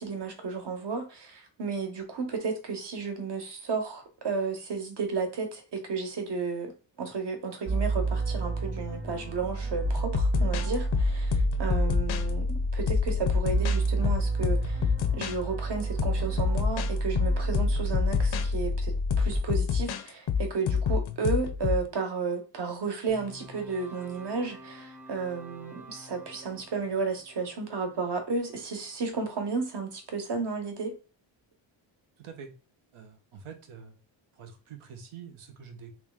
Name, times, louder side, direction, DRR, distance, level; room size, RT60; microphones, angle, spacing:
voice 1, 0.0-6.7 7.0-14.9 15.1-30.9, right 4 dB, 55° right, 1.1 m, -33 dB
sound 1, 7.7-19.4, right 2 dB, 25° right, 1.1 m, -29 dB
sound 2, 9.8-12.3 12.9-15.4 15.8-18.5 19.1-21.9, left 7 dB, 55° left, 0.5 m, -27 dB
sound 3, 23.1-29.3, right 2 dB, 5° right, 0.5 m, -50 dB
voice 2, 32.2-32.5 32.9-33.9 34.3-35.9, right 7 dB, 85° right, 0.9 m, -46 dB
3.1 x 2.8 x 3.6 m
wide cardioid pair, 155°, 49 cm